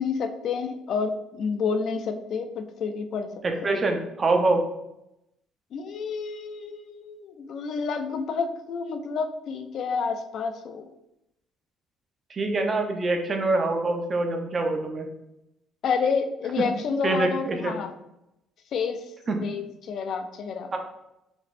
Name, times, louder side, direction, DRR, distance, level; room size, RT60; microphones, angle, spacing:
voice 1, 0.0-3.3 3.6-3.8 5.7-10.9 15.8-17.9 18.7-19.1 19.4-20.7, left 5 dB, 60° left, 8 dB, 0.4 m, -29 dB
voice 2, 3.4-4.6 12.3-15.1 17.0-17.7 19.3-19.4 20.7-20.8, right 2 dB, 35° right, 3 dB, 0.8 m, -25 dB
5.2 x 3.1 x 2.5 m, 0.87 s
cardioid pair, 90°, 0 cm